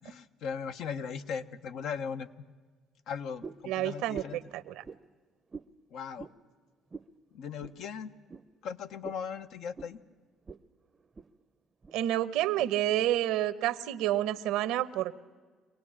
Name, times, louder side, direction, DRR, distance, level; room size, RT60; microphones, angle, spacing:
voice 1, 0.0-2.3 3.1-4.4 5.9-6.3 7.3-8.1 8.6-10.0, left 6 dB, 75° left, 9 dB, 1.0 m, -38 dB
sound 1, 3.4-3.7 4.1-4.4 4.8-5.0 5.5-5.7 6.2-6.4 6.9-7.1 7.6-7.8 8.3-8.5 9.0-9.2 9.8-9.9 10.5-10.6 10.9-11.3 11.8-12.0 12.6-12.7, right 4 dB, 30° right, 0.6 m, -44 dB
voice 2, 3.7-4.2 4.5-4.8 11.9-15.1, right 13 dB, 90° right, 14 dB, 0.9 m, -29 dB
24.5 x 18.5 x 8.7 m, 1.5 s
cardioid pair, 100°, 0 cm